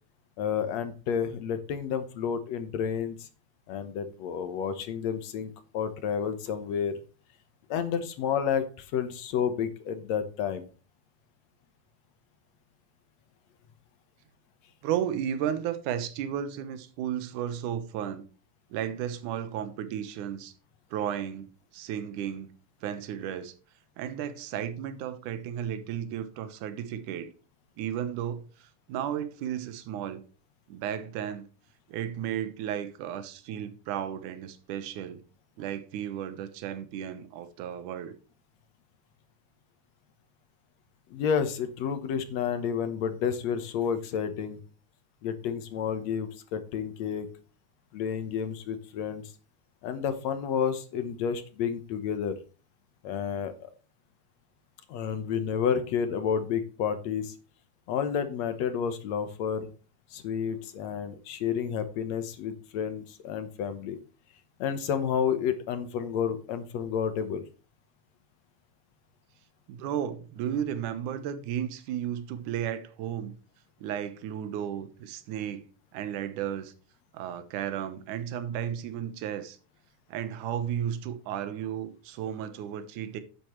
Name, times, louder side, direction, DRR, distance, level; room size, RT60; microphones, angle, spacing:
voice 1, 0.4-3.3 3.7-6.9 7.7-10.7 41.1-44.6 45.2-47.3 47.9-49.2 49.8-52.3 53.0-53.7 54.9-57.3 57.9-59.7 60.1-64.0 64.6-67.4, left 7 dB, 65° left, 2.1 m, -30 dB
voice 2, 14.8-18.3 18.7-20.5 20.9-21.5 21.7-22.5 22.8-23.5 24.0-27.3 27.8-30.2 30.7-31.5 31.9-35.2 35.6-38.1 69.7-73.3 73.8-75.7 75.9-76.7 77.1-79.6 80.1-83.2, right 9 dB, 75° right, 2.5 m, -34 dB
10.5 x 9.1 x 3.1 m
omnidirectional pair, 3.7 m